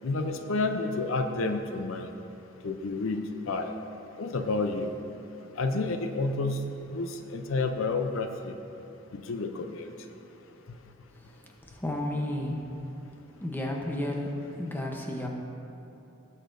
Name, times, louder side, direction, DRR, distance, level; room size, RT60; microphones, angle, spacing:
voice 1, 0.0-2.1 2.6-3.2 3.5-3.7 4.2-4.9 5.6-6.6 6.9-8.5 9.1-9.9, left 3 dB, 75° left, 6 dB, 0.6 m, -30 dB
voice 2, 11.2-12.7 13.4-15.3, left 1 dB, 10° left, 0 dB, 0.8 m, -33 dB
18.0 x 6.6 x 2.6 m, 2.9 s
head